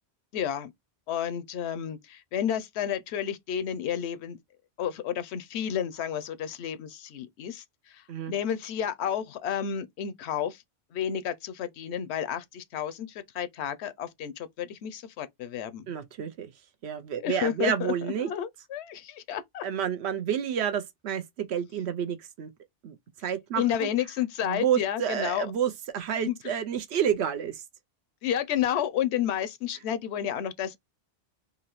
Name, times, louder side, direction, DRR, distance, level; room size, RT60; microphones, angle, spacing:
voice 1, 0.3-0.7 1.1-4.4 4.8-10.6 10.9-15.8 17.2-17.9 18.2-19.6 23.6-25.5 26.2-26.4 28.2-30.8, left 9 dB, 85° left, 0.9 m, -31 dB
voice 2, 15.9-16.5 16.8-18.3 19.6-22.5 22.8-23.9 24.4-27.6, right 8 dB, 80° right, 0.9 m, -29 dB
3.8 x 2.8 x 3.0 m
omnidirectional pair, 1.1 m